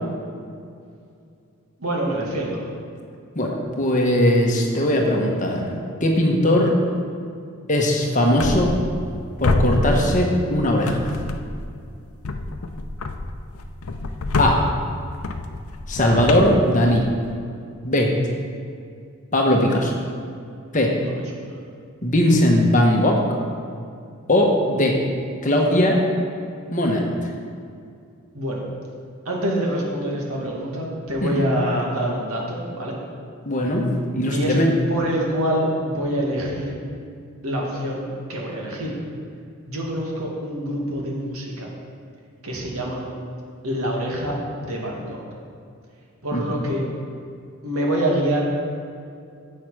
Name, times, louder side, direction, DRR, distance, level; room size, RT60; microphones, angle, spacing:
voice 1, 1.8-2.6 20.9-21.6 28.3-28.6 29.3-32.9 34.3-34.6 34.9-36.7 37.4-39.0 39.7-41.7 42.4-43.0 43.6-45.2 46.2-46.8 47.6-48.5, right 1 dB, 80° right, -2 dB, 2.0 m, -26 dB
voice 2, 3.3-6.8 7.7-8.7 9.4-11.2 14.4-14.6 15.9-17.1 17.8-18.1 19.3-19.9 20.7-21.0 22.0-23.2 24.3-25.0 25.4-26.0 26.7-27.1 31.2-31.4 33.4-34.7 46.3-46.5, left 1 dB, 35° left, 0 dB, 1.1 m, -19 dB
sound 1, 8.4-9.2 9.4-10.5 10.9-11.7 12.2-17.3, left 2 dB, 80° left, 0.6 m, -26 dB
9.7 x 7.6 x 4.9 m, 2.4 s
head